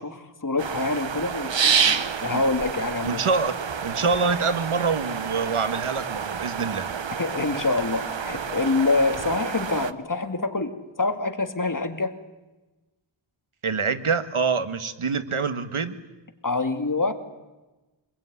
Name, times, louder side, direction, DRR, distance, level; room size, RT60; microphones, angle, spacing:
voice 1, 0.0-3.3 7.2-10.7 11.0-12.2 16.4-17.1, left 3 dB, 40° left, 8 dB, 2.6 m, -26 dB
sound 1, 0.6-9.9, right 6 dB, 65° right, 1.1 m, -28 dB
voice 2, 3.0-3.5 3.8-6.9 13.6-16.0, right 5 dB, 85° right, 11 dB, 1.8 m, -25 dB
26.0 x 21.0 x 9.7 m, 1.1 s
wide cardioid pair, 90°, 48 cm